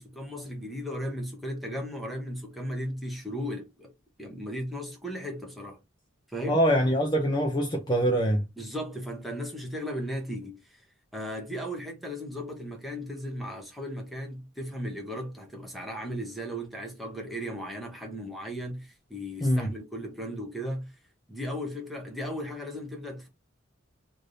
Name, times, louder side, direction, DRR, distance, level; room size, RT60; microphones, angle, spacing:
voice 1, 0.0-3.9 4.2-5.8 6.3-6.6 8.6-10.8 11.1-20.9 21.3-23.3, equal, ahead, 0.9 m, -36 dB
voice 2, 6.5-8.4 19.4-19.7, equal, 20° left, 0.5 m, -24 dB
3.2 x 2.6 x 2.6 m
head